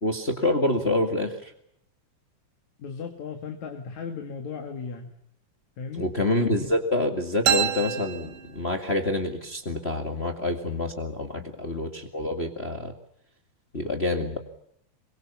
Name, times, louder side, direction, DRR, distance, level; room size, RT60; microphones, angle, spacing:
voice 1, 0.0-1.5 6.0-12.9 13.7-14.4, left 1 dB, 25° left, 4 dB, 1.9 m, -27 dB
voice 2, 2.8-5.1 5.8-6.1, left 5 dB, 70° left, 4 dB, 3.2 m, -36 dB
sound 1, 7.5-9.2, right 9 dB, 70° right, 3.3 m, -28 dB
24.5 x 22.5 x 7.2 m, 0.75 s
omnidirectional pair, 3.5 m